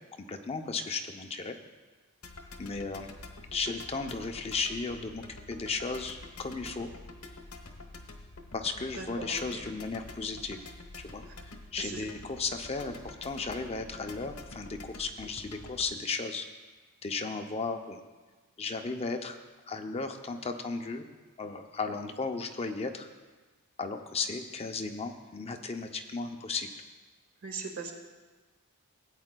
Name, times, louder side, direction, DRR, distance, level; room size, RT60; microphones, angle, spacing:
voice 1, 0.3-1.6 2.6-3.1 3.5-6.9 8.5-10.6 11.0-16.5 17.0-18.0 18.6-19.4 19.7-21.0 21.4-23.1 23.8-26.7, left 4 dB, 30° left, 5 dB, 0.5 m, -35 dB
sound 1, 2.2-15.9, left 2 dB, 80° left, 1.0 m, -47 dB
voice 2, 8.9-9.6 11.3-11.4 11.8-12.0 27.4-27.9, right 4 dB, 70° right, 1 dB, 1.7 m, -40 dB
18.0 x 8.6 x 2.2 m, 1.3 s
head